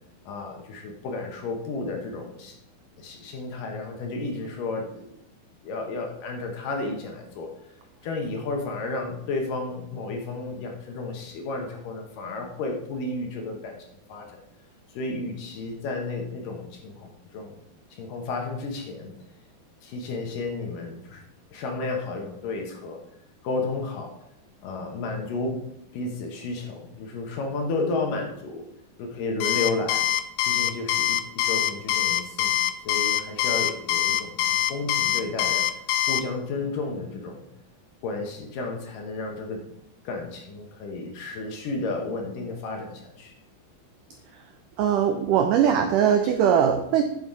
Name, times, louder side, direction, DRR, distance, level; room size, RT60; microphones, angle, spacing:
voice 1, 0.3-2.5 3.0-5.0 5.6-7.5 8.0-13.8 14.1-14.4 14.9-17.6 17.9-19.1 19.8-21.2 21.5-23.0 23.4-24.1 24.6-25.6 25.9-28.7 29.0-30.0 30.4-35.7 36.1-37.4 38.0-39.6 40.0-43.3, left 3 dB, 65° left, 2 dB, 2.4 m, -32 dB
Alarm, 29.4-36.2, left 13 dB, 90° left, 1.9 m, -24 dB
voice 2, 44.8-47.0, right 8 dB, 85° right, 6 dB, 1.8 m, -21 dB
9.4 x 7.1 x 4.7 m, 0.80 s
omnidirectional pair, 4.7 m